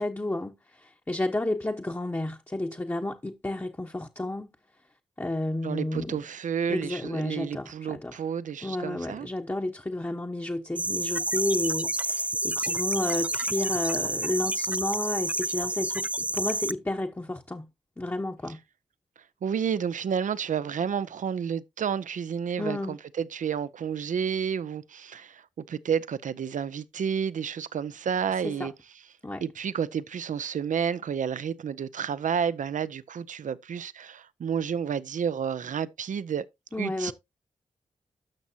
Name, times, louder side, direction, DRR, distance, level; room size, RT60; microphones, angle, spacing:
voice 1, 0.0-4.5 5.2-6.2 6.7-8.2 8.6-17.7 18.0-18.6 22.6-23.0 28.4-28.7 29.2-29.4 36.7-37.1, left 1 dB, 20° left, 0.9 m, -31 dB
voice 2, 5.6-9.3 19.4-28.7 29.4-36.4 36.8-37.1, right 7 dB, 75° right, 0.6 m, -30 dB
sound 1, 10.8-16.7, right 1 dB, 10° right, 0.5 m, -29 dB
12.5 x 6.1 x 2.7 m
cardioid pair, 40°, 13 cm